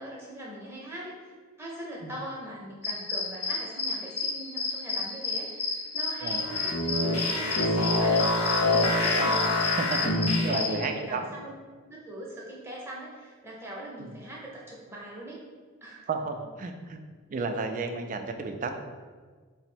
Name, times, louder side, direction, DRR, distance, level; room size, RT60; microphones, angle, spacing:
voice 1, 0.0-1.3 1.6-9.5 10.0-11.5 11.8-15.4 15.8-16.1, right 1 dB, 10° right, -4 dB, 0.8 m, -41 dB
sound 1, 2.8-10.8, left 4 dB, 50° left, 0.8 m, -31 dB
sound 2, 6.4-10.8, left 2 dB, 90° left, 0.6 m, -26 dB
voice 2, 9.8-10.1 10.4-11.3 14.0-14.2 16.1-17.0 17.3-18.7, right 4 dB, 35° right, 6 dB, 0.3 m, -32 dB
3.9 x 2.0 x 4.3 m, 1.5 s
head